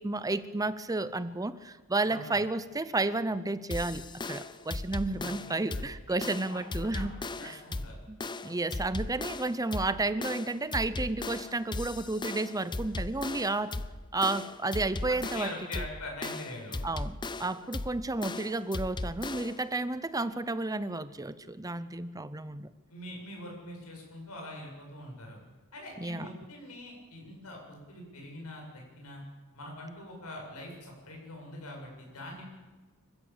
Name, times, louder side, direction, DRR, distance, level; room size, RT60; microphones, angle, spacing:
voice 1, 0.0-7.1 7.4-7.6 8.1-8.2 8.4-13.8 14.1-15.8 16.8-22.7 26.0-26.3, right 2 dB, 15° right, 14 dB, 0.7 m, -32 dB
voice 2, 2.1-2.4 5.1-6.2 6.5-8.0 15.1-16.8 22.9-25.4 25.7-29.2 29.5-32.4, left 1 dB, 90° left, 0 dB, 7.6 m, -43 dB
sound 1, 3.7-19.7, left 2 dB, 20° left, 0.6 m, -37 dB
25.5 x 15.5 x 7.3 m, 1.3 s
head